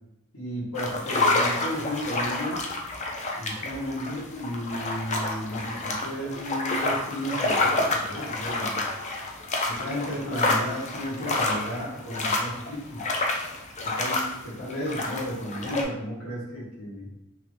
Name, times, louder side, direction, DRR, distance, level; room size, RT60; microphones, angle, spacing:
voice 1, 0.3-2.6 3.3-8.8 9.6-13.0 13.8-17.1, equal, 75° left, -7 dB, 1.2 m, -33 dB
sound 1, 0.7-15.8, left 2 dB, 30° left, 0.4 m, -28 dB
2.7 x 2.5 x 3.5 m, 0.91 s
head